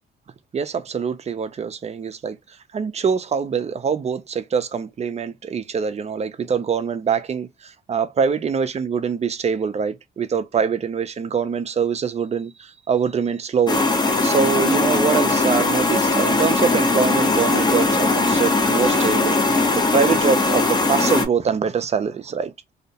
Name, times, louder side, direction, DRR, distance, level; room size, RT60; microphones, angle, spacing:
voice 1, 0.5-2.4 2.7-13.8 14.2-22.5, right 6 dB, 35° right, 0.5 m, -24 dB
sound 1, 13.7-21.3, left 3 dB, 20° left, 0.7 m, -19 dB
2.7 x 2.1 x 2.8 m
cardioid pair, 90°, 20 cm